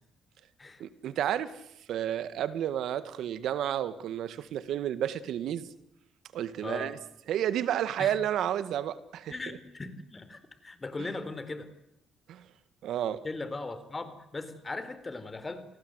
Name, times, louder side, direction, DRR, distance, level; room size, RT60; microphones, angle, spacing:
voice 1, 0.8-1.6 1.9-5.7 6.3-7.0 7.3-9.3 11.0-11.1 12.3-12.4 12.8-13.2, right 10 dB, 75° right, 14 dB, 1.9 m, -31 dB
voice 2, 6.6-6.9 8.0-8.2 9.3-11.7 13.2-15.6, left 3 dB, 25° left, 12 dB, 4.3 m, -38 dB
30.0 x 19.0 x 8.2 m, 0.79 s
cardioid pair, 90°, 0 cm